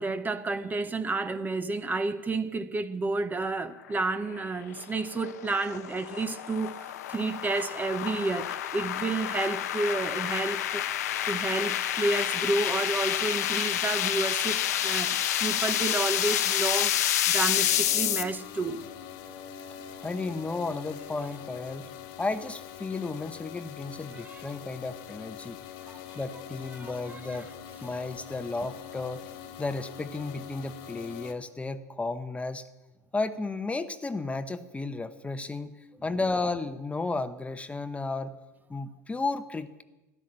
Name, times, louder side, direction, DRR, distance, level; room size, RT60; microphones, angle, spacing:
voice 1, 0.0-18.8 24.1-24.5 25.8-26.2 26.7-27.4, right 3 dB, 20° right, 12 dB, 0.8 m, -31 dB
sound 1, 4.3-18.2, left 11 dB, 75° left, 0.8 m, -29 dB
sound 2, 17.5-31.3, left 9 dB, 60° left, 1.4 m, -44 dB
voice 2, 20.0-21.9 22.2-25.6 26.2-27.5 27.8-29.2 29.6-32.7 33.1-35.8 36.0-38.3 38.7-39.8, left 3 dB, 15° left, 11 dB, 0.9 m, -33 dB
12.5 x 12.0 x 7.5 m, 1.1 s
hypercardioid pair, 85°, 9 cm